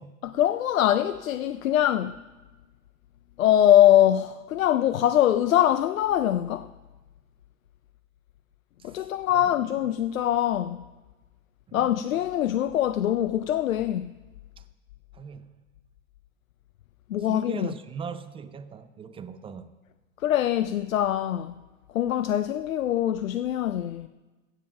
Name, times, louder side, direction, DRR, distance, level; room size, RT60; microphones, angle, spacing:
voice 1, 0.2-2.1 3.4-6.7 8.8-10.9 11.7-14.1 17.1-17.7 20.2-21.6 21.9-24.1, left 11 dB, 85° left, 0.5 m, -23 dB
voice 2, 8.8-9.5 11.7-11.9 14.6-14.7 15.1-15.6 17.3-19.7, right 6 dB, 15° right, 0.6 m, -40 dB
15.5 x 7.5 x 5.9 m
hypercardioid pair, 100°, 40 cm